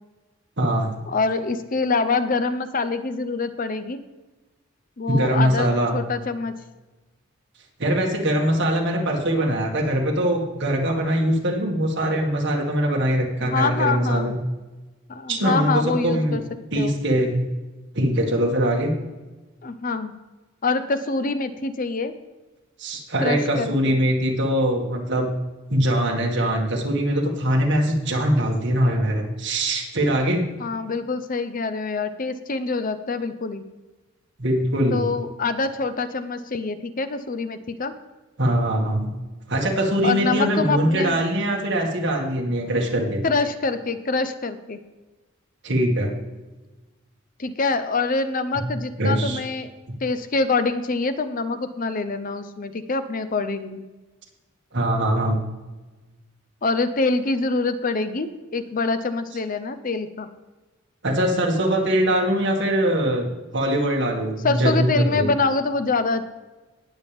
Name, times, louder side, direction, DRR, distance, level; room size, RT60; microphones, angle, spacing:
voice 1, 0.6-0.9 5.1-6.0 7.8-14.4 15.3-16.4 16.7-17.5 17.9-18.9 22.8-25.4 25.7-30.4 34.4-35.1 38.4-39.1 39.5-43.2 45.6-46.2 48.5-48.7 49.0-49.4 54.7-55.4 61.0-63.3 63.5-65.3, right 1 dB, 55° right, 0 dB, 2.1 m, -22 dB
voice 2, 1.1-4.0 5.0-6.6 13.4-14.4 15.1-16.4 16.8-16.9 19.6-20.2 20.6-22.1 23.2-23.9 30.6-33.6 34.9-37.9 40.0-41.2 43.2-44.8 47.4-49.7 50.0-53.8 56.6-60.3 64.4-66.3, left 3 dB, 40° left, 11 dB, 0.6 m, -25 dB
19.0 x 7.4 x 3.6 m, 1.2 s
head